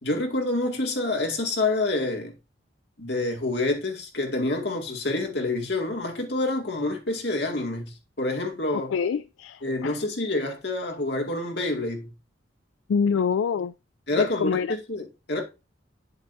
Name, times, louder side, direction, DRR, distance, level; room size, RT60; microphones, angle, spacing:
voice 1, 0.0-2.3 3.0-8.9 9.6-12.1 14.1-15.4, left 2 dB, 60° left, 2.2 m, -27 dB
voice 2, 8.7-10.0 12.9-13.7 14.1-14.7, left 6 dB, 85° left, 0.3 m, -26 dB
8.7 x 7.8 x 2.7 m
head